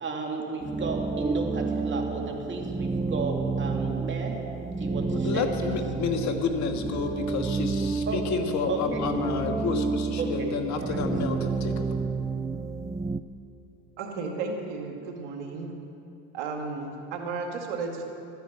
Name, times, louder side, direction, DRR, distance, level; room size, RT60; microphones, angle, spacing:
voice 1, 0.0-4.4 4.8-5.8 8.0-8.2 8.7-9.0 10.2-11.0, right 3 dB, 35° right, 1 dB, 2.7 m, -33 dB
sound 1, 0.6-13.2, right 4 dB, 10° right, 0.4 m, -30 dB
voice 2, 5.1-12.0, left 5 dB, 55° left, 5 dB, 1.7 m, -30 dB
voice 3, 14.0-15.7 16.3-18.0, right 4 dB, 80° right, 2 dB, 2.2 m, -33 dB
13.5 x 10.5 x 8.0 m, 2.7 s
supercardioid pair, 90°, 35 cm